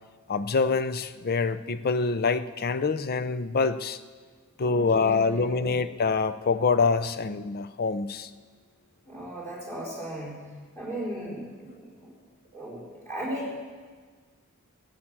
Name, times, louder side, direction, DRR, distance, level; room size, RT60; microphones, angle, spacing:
voice 1, 0.3-4.0 4.6-8.3, left 4 dB, 45° left, 13 dB, 0.5 m, -25 dB
voice 2, 4.6-5.8 9.0-10.4 10.7-12.1 12.5-13.6, equal, 10° left, -5 dB, 4.2 m, -36 dB
14.5 x 8.7 x 7.4 m, 1.5 s
head